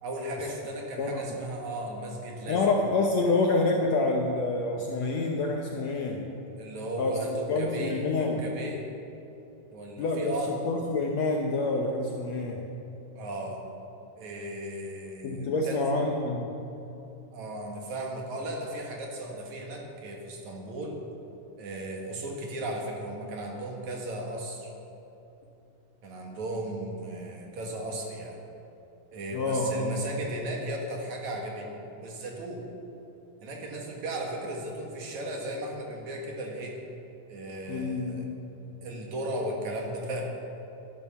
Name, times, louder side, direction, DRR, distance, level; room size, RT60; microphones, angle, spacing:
voice 1, 0.0-2.6 6.6-8.8 9.7-10.5 13.2-13.6 14.2-15.8 17.3-21.0 21.6-24.7 26.0-28.4 29.1-32.6 33.4-36.7 37.3-38.2 38.8-40.4, right 1 dB, 60° right, 0 dB, 2.9 m, -36 dB
voice 2, 1.0-1.3 2.5-6.2 7.0-7.1 7.5-8.4 10.0-12.6 15.2-16.5 29.3-30.0 37.7-38.3, left 3 dB, 70° left, 1 dB, 1.7 m, -27 dB
12.5 x 11.0 x 7.1 m, 3.0 s
omnidirectional pair, 4.0 m